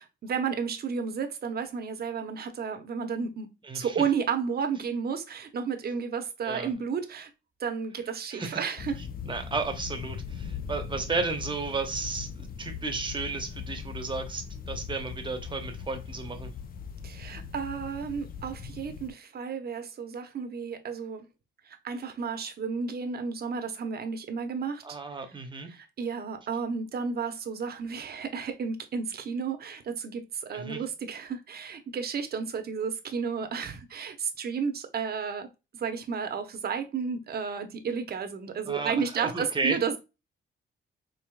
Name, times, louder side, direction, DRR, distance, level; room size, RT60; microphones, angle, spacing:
voice 1, 0.0-3.5 3.7-7.3 7.6-9.0 17.0-21.3 21.7-24.8 25.7-35.5 35.7-40.0, right 6 dB, 50° right, 0.8 m, -32 dB
sound 1, 8.8-19.1, left 7 dB, 45° left, 0.6 m, -40 dB
voice 2, 9.2-16.5 24.8-25.7 30.5-30.8 38.7-39.8, right 3 dB, 25° right, 0.8 m, -33 dB
4.7 x 2.9 x 2.2 m
cardioid pair, 110°, 21 cm